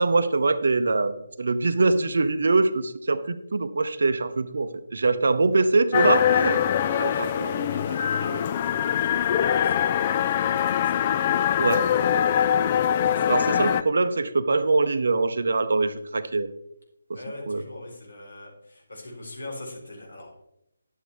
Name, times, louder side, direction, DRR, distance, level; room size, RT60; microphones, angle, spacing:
voice 1, 0.0-6.6 7.0-7.1 11.6-11.8 13.3-16.5 17.1-17.2 17.5-17.6, right 3 dB, 55° right, 12 dB, 0.7 m, -23 dB
sound 1, 5.9-13.8, left 9 dB, 25° left, 0.3 m, -23 dB
voice 2, 6.2-13.8 15.5-15.6 17.1-20.4, left 1 dB, 65° left, 0 dB, 4.1 m, -40 dB
11.0 x 8.3 x 3.4 m, 0.79 s
figure-of-eight pair, 150°, 0 cm